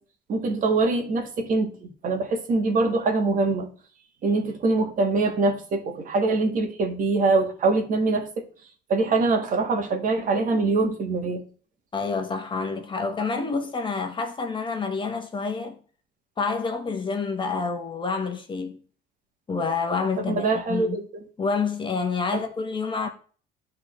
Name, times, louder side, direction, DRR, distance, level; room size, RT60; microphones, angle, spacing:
voice 1, 0.3-3.7 4.2-8.4 8.9-11.4 20.3-21.2, right 3 dB, 55° right, 1.7 m, -23 dB
voice 2, 11.9-15.8 16.4-18.8 19.5-21.0 21.4-23.1, left 4 dB, 30° left, 1.2 m, -28 dB
11.0 x 3.9 x 3.2 m
cardioid pair, 110°, 17 cm